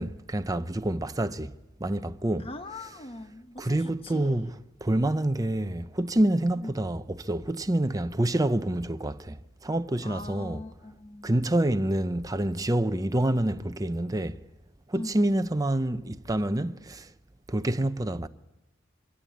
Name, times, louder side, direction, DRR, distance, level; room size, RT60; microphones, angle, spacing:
voice 1, 0.0-2.5 3.6-10.6 11.2-14.4 14.9-17.1 17.5-18.3, right 1 dB, 20° right, 0.7 m, -27 dB
voice 2, 2.4-4.5 6.6-6.7 10.0-11.3 14.9-15.2, left 1 dB, 30° left, 1.2 m, -41 dB
24.0 x 16.5 x 8.5 m
head